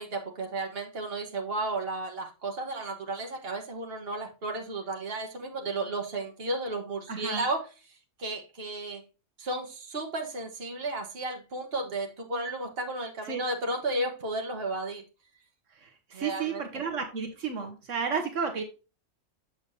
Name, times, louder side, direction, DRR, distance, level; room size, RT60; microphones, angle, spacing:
voice 1, 0.0-7.6 8.2-9.0 9.4-15.0 16.1-16.6, right 2 dB, 50° right, 2 dB, 1.7 m, -33 dB
voice 2, 7.1-7.5 13.2-13.4 15.7-18.6, right 6 dB, 75° right, 4 dB, 1.5 m, -32 dB
7.1 x 6.9 x 2.7 m, 0.32 s
omnidirectional pair, 1.3 m